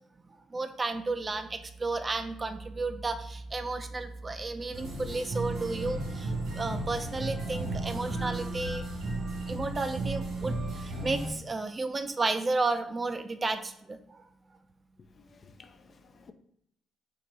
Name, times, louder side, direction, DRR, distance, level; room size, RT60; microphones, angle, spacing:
voice 1, 0.5-8.8 9.5-14.2, right 3 dB, 30° right, 0.4 m, -33 dB
sound 1, 4.7-11.3, right 2 dB, 80° right, 1.6 m, -34 dB
voice 2, 15.0-16.3, left 4 dB, 45° left, 0.4 m, -55 dB
4.6 x 2.7 x 3.9 m
cardioid pair, 90°, 0 cm